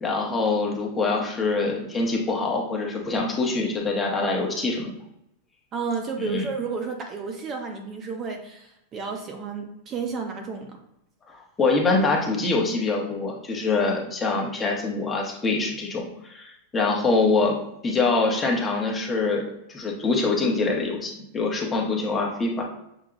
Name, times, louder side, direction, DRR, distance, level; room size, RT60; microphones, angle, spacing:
voice 1, 0.0-4.9 6.2-6.5 11.3-17.6 17.8-19.4 19.7-22.6, left 3 dB, 20° left, -1 dB, 0.9 m, -24 dB
voice 2, 5.7-10.8, right 5 dB, 30° right, 3 dB, 0.7 m, -32 dB
6.3 x 2.8 x 2.5 m, 0.80 s
supercardioid pair, 140°, 0 cm